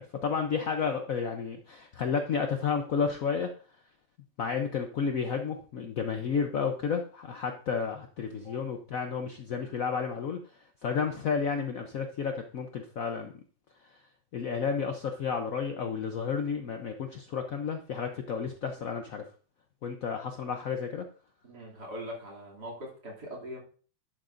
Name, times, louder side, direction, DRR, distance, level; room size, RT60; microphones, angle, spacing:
voice 1, 0.0-3.5 4.4-10.4 10.8-13.3 14.3-19.2 19.8-21.1, left 6 dB, 90° left, 5 dB, 0.7 m, -31 dB
voice 2, 21.4-23.6, equal, 45° right, -3 dB, 3.3 m, -41 dB
11.0 x 8.8 x 2.6 m, 0.41 s
omnidirectional pair, 2.4 m